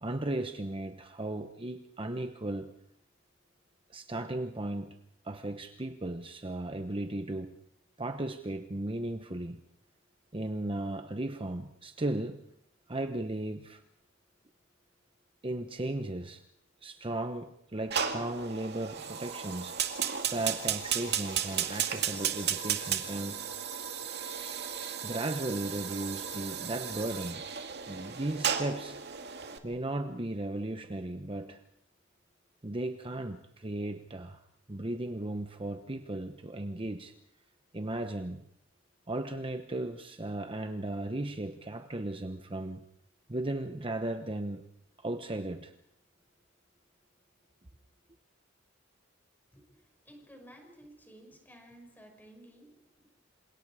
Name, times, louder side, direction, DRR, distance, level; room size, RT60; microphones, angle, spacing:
voice 1, 0.0-2.7 3.9-5.0 5.2-7.6 8.0-9.6 10.3-12.4 12.9-13.8 15.4-16.4 16.8-23.4 25.0-27.4 27.9-29.0 29.6-31.6 32.6-34.4 34.7-37.1 37.7-38.4 39.1-42.8 43.3-44.6 45.0-45.7, right 1 dB, 25° right, 7 dB, 1.0 m, -36 dB
Fire, 17.9-29.6, right 8 dB, 55° right, 2.3 m, -34 dB
voice 2, 49.5-52.7 53.0-53.1, right 1 dB, 10° left, 3 dB, 5.9 m, -54 dB
28.0 x 27.5 x 4.9 m, 0.73 s
head